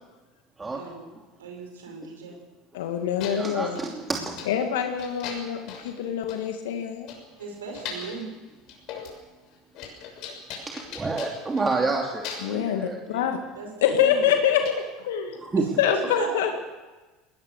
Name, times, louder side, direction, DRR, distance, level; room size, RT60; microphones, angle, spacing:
voice 1, 0.7-1.0 1.4-2.4 7.4-8.3 13.5-14.3 15.6-15.7 15.9-16.6, right 4 dB, 80° right, 2 dB, 5.2 m, -37 dB
voice 2, 2.7-3.8 4.5-7.1 12.4-13.4 13.8-14.6 15.0-15.4 15.8-16.6, left 9 dB, 75° left, 5 dB, 2.1 m, -25 dB
sound 1, 2.8-2.9 3.2-3.9 4.4-4.6 5.0-6.0 6.3-6.4 6.8-6.9 7.1-8.2 8.7-9.2 9.5-11.9 12.2-12.6 13.9-14.1 14.7-14.8, left 6 dB, 60° left, 6.2 m, -39 dB
voice 3, 3.3-4.5 10.7-13.3 15.4-15.6, right 3 dB, 20° right, 1 dB, 2.9 m, -29 dB
20.5 x 20.0 x 6.7 m, 1.2 s
hypercardioid pair, 75°, 0 cm